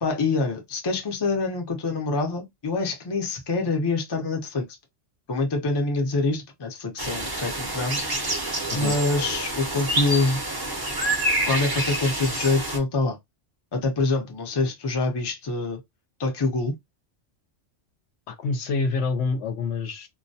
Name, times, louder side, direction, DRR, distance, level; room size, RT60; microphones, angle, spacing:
voice 1, 0.0-4.7 5.3-8.0 8.7-10.4 11.4-13.2 13.7-15.8 16.2-16.7, left 3 dB, 30° left, 0.5 m, -25 dB
sound 1, 7.0-12.8, right 1 dB, 30° right, 0.5 m, -27 dB
voice 2, 18.3-20.1, left 4 dB, 70° left, 0.8 m, -27 dB
2.2 x 2.1 x 2.6 m
omnidirectional pair, 1.2 m